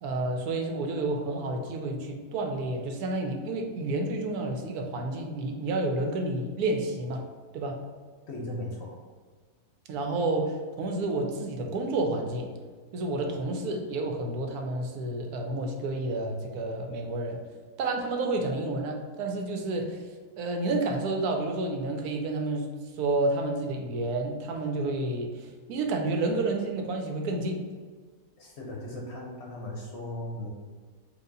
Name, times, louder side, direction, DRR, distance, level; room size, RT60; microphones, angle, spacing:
voice 1, 0.0-7.2 7.5-7.8 9.9-12.5 12.9-17.4 17.8-20.0 20.4-22.7 23.0-27.7, right 2 dB, 85° right, 3 dB, 1.1 m, -30 dB
voice 2, 8.3-9.0 28.4-30.5, left 1 dB, 60° left, -1 dB, 0.8 m, -37 dB
4.7 x 2.5 x 3.9 m, 1.5 s
omnidirectional pair, 1.6 m